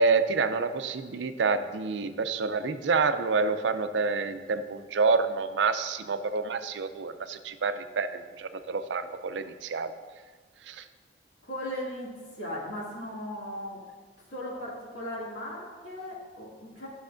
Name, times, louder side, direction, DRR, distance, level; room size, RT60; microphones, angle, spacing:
voice 1, 0.0-9.9 10.7-10.8, right 4 dB, 80° right, 10 dB, 0.5 m, -28 dB
voice 2, 11.4-13.8 14.3-16.9, left 1 dB, 90° left, -5 dB, 2.3 m, -37 dB
12.0 x 6.3 x 2.5 m, 1.5 s
head